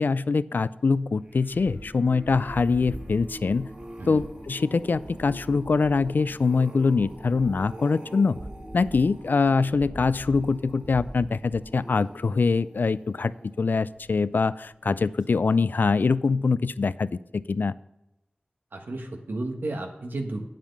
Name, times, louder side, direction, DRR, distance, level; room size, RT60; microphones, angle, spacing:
voice 1, 0.0-3.7 4.1-8.4 8.7-13.3 13.6-17.7, left 4 dB, 70° left, 17 dB, 0.3 m, -24 dB
sound 1, 1.1-14.5 15.0-15.3 15.6-15.7, right 1 dB, 30° right, 1.7 m, -42 dB
voice 2, 18.7-20.4, right 2 dB, 90° right, 4 dB, 1.3 m, -33 dB
9.1 x 7.4 x 5.3 m, 0.91 s
wide cardioid pair, 70°, 3 cm